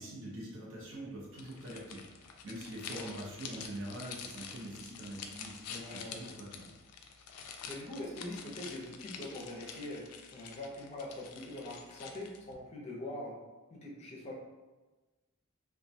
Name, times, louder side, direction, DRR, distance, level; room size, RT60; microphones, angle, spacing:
voice 1, 0.0-6.7, right 1 dB, 60° right, -5 dB, 0.7 m, -44 dB
sound 1, 1.4-12.5, left 6 dB, 80° left, 0.3 m, -47 dB
voice 2, 5.7-6.3 7.7-10.1 10.3-13.4 13.7-14.3, left 1 dB, 30° left, -3 dB, 0.5 m, -43 dB
2.3 x 2.1 x 2.6 m, 1.2 s
head